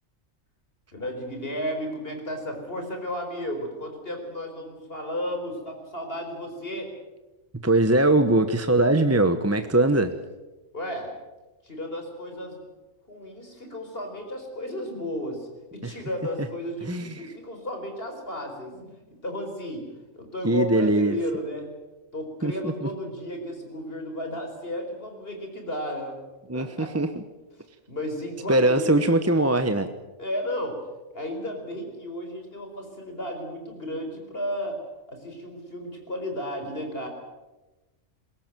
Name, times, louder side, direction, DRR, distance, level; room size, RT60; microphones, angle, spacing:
voice 1, 0.9-6.9 10.7-11.1 11.6-12.6 13.1-19.0 19.2-19.9 20.2-21.7 22.1-26.2 26.5-26.9 27.9-29.0 30.2-30.8 31.1-34.8 35.1-37.1, left 1 dB, 50° left, 4 dB, 4.8 m, -33 dB
voice 2, 7.6-10.1 15.8-15.9 16.8-17.3 20.4-21.2 22.4-22.9 26.5-27.1 28.5-29.9, right 2 dB, 15° right, 9 dB, 1.0 m, -21 dB
21.5 x 17.5 x 9.2 m, 1.1 s
omnidirectional pair, 1.3 m